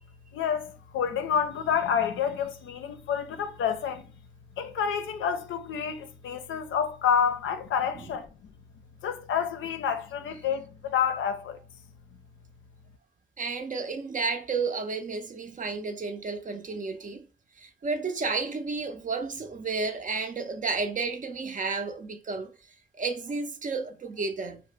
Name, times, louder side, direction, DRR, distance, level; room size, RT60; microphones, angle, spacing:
voice 1, 0.3-4.1 4.6-8.3 9.0-11.6, left 7 dB, 75° left, 0.5 m, -28 dB
voice 2, 13.4-17.3 17.6-22.5 23.0-24.6, right 4 dB, 40° right, 0.5 m, -32 dB
2.6 x 2.0 x 3.3 m
supercardioid pair, 45°, 20 cm